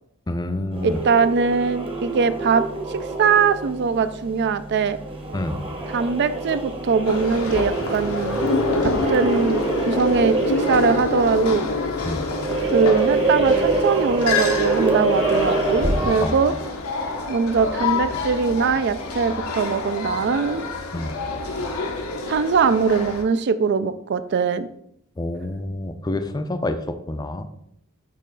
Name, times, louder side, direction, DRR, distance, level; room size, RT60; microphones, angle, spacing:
voice 1, 0.3-1.0 5.3-5.7 12.0-12.3 16.2-16.6 20.9-21.1 25.2-27.4, left 1 dB, 20° left, 9 dB, 0.4 m, -28 dB
sound 1, 0.7-16.4, right 3 dB, 25° right, 1.0 m, -26 dB
voice 2, 0.8-2.6 2.9-5.0 5.9-8.4 8.8-9.6 9.9-11.7 12.7-16.5 17.3-20.6 22.3-24.7, right 5 dB, 55° right, 13 dB, 0.4 m, -21 dB
sound 2, 7.0-23.2, left 3 dB, 85° left, 0.9 m, -29 dB
sound 3, 8.4-13.4, left 3 dB, 70° left, 0.5 m, -26 dB
6.7 x 3.1 x 5.2 m, 0.74 s
head